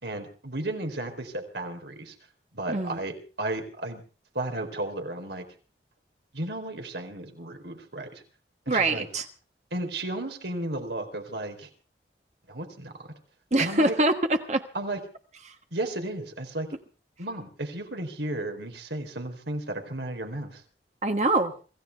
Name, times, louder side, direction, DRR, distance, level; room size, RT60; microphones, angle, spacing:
voice 1, 0.0-2.1 2.5-4.0 4.3-5.4 6.3-8.2 8.7-9.1 9.7-11.7 12.5-12.9 13.6-14.0 14.7-15.0 15.7-16.7 17.2-20.6, right 1 dB, 80° right, 5 dB, 3.9 m, -34 dB
voice 2, 2.7-3.0 8.7-9.2 13.5-14.6 21.0-21.5, right 2 dB, 40° right, 6 dB, 1.4 m, -24 dB
26.5 x 15.5 x 3.5 m, 0.37 s
head